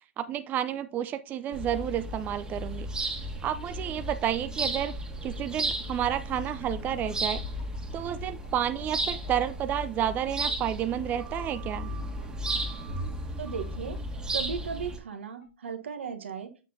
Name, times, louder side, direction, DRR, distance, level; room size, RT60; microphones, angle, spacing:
voice 1, 0.2-2.9 3.4-5.0 5.2-7.4 7.9-11.9, right 10 dB, 30° right, 11 dB, 0.5 m, -30 dB
sound 1, 1.5-15.0, right 1 dB, 10° right, 1.5 m, -34 dB
sound 2, 5.3-10.5 10.8-10.9 11.2-11.3 11.5-11.6 11.9-12.0 12.2-12.3 12.6-12.7 13.0-13.1 13.5-13.6 13.9-14.0 14.4-14.5 14.9-15.0 15.4-15.5, left 6 dB, 65° left, 2.9 m, -55 dB
voice 2, 13.4-14.0 14.3-16.5, right 6 dB, 80° right, 7 dB, 1.2 m, -36 dB
7.0 x 6.8 x 2.7 m, 0.31 s
hypercardioid pair, 110°, 6 cm